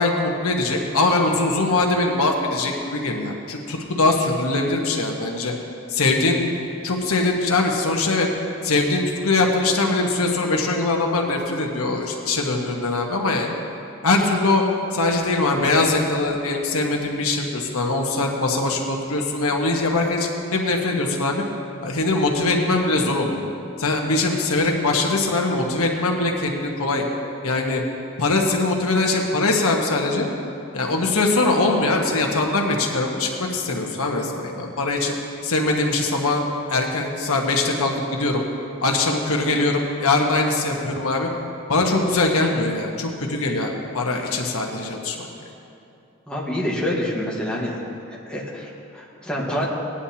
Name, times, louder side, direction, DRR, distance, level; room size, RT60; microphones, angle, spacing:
voice 1, 0.0-5.5 5.9-6.5 6.8-8.3 8.6-13.5 14.0-14.6 14.9-21.4 21.8-23.4 23.8-27.0 27.4-27.8 28.2-30.3 30.7-35.1 35.4-38.4 38.8-41.3 41.7-45.3, left 2 dB, 85° left, 1 dB, 1.3 m, -22 dB
voice 2, 46.3-47.8 48.1-49.7, left 1 dB, 5° left, -5 dB, 1.4 m, -27 dB
18.0 x 10.0 x 2.9 m, 2.7 s
head